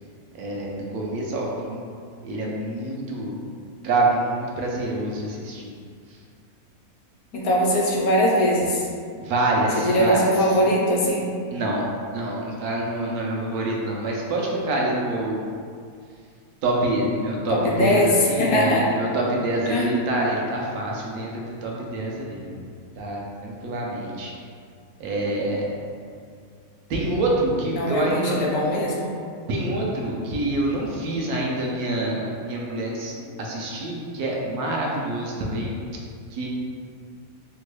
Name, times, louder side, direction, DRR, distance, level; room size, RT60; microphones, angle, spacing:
voice 1, 0.3-1.8 2.2-3.3 3.8-5.6 9.2-10.5 11.5-11.9 12.1-15.4 16.6-22.7 23.0-24.3 25.0-25.8 26.9-28.5 29.5-35.7 36.3-36.5, right 2 dB, 80° right, -2 dB, 1.1 m, -26 dB
voice 2, 7.3-8.9 9.8-11.3 17.5-18.1 18.4-18.8 19.7-19.9 27.8-29.1, equal, 75° left, -3 dB, 1.0 m, -21 dB
3.1 x 2.2 x 3.1 m, 2.2 s
omnidirectional pair, 1.6 m